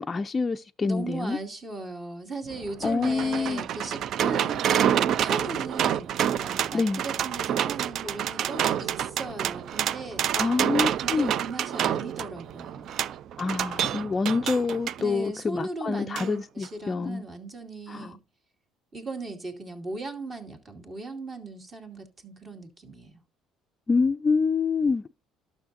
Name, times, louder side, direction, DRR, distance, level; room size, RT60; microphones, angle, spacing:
voice 1, 0.0-1.4 2.8-3.6 6.7-7.0 10.3-11.3 13.4-17.2 17.9-18.1 23.9-25.1, left 4 dB, 30° left, 0.3 m, -26 dB
voice 2, 0.8-10.3 11.0-13.1 15.0-18.2 18.9-23.2, right 2 dB, 35° right, 2.3 m, -38 dB
sound 1, 2.5-15.0 16.2-16.3 16.6-16.7, right 10 dB, 60° right, 0.3 m, -28 dB
12.0 x 6.3 x 2.7 m
supercardioid pair, 75°, 0 cm